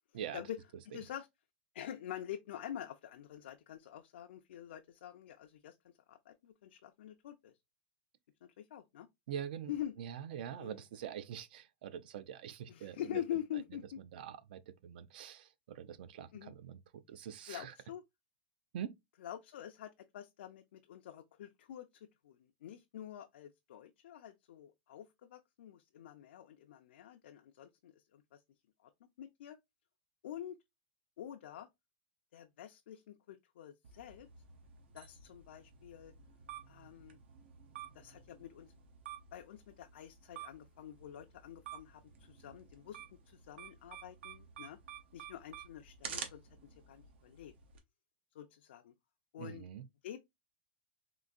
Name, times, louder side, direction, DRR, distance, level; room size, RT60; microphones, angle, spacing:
voice 1, 0.9-1.3 1.7-7.5 8.4-9.1 9.7-10.0 10.6-10.8 12.7-14.0 16.3-16.5 17.5-18.0 19.2-21.9 22.2-28.4 28.8-28.9 29.2-29.6 30.2-30.6 31.2-31.7 32.3-34.3 34.9-36.1 36.7-37.2 37.9-38.7 39.3-43.0 43.3-44.8 45.1-46.4 46.9-47.5 48.3-48.9 49.3-49.6 50.0-50.2, left 11 dB, 75° left, 0.4 m, -46 dB
voice 2, 9.3-9.7 10.0-13.2 13.5-13.6 14.1-17.8 18.7-19.0 49.4-49.9, right 9 dB, 60° right, 0.4 m, -44 dB
sound 1, 33.8-47.8, right 8 dB, 85° right, 0.7 m, -51 dB
3.8 x 2.5 x 2.3 m
supercardioid pair, 170°, 6 cm